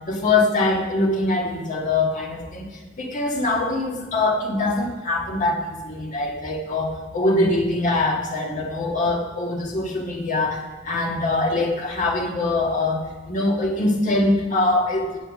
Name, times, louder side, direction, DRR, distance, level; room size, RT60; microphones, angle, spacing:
voice 1, 0.1-2.6 3.0-15.2, left 2 dB, 40° left, -1 dB, 1.6 m, -23 dB
8.5 x 8.0 x 6.2 m, 1.3 s
head